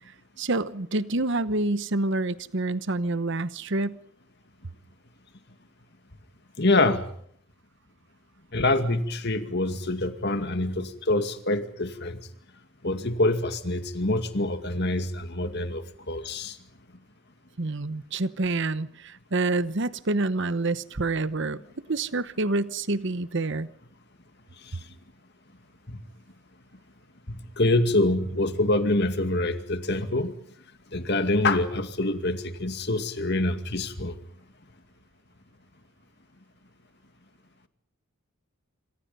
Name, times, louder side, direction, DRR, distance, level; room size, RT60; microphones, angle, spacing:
voice 1, 0.4-4.0 17.6-21.6 21.9-23.7, right 2 dB, 55° right, 15 dB, 1.0 m, -27 dB
voice 2, 6.6-7.0 8.5-12.2 12.8-16.6 25.9-26.0 27.3-30.3 30.9-34.1, left 2 dB, 50° left, 8 dB, 2.2 m, -25 dB
28.0 x 26.5 x 5.5 m, 0.64 s
head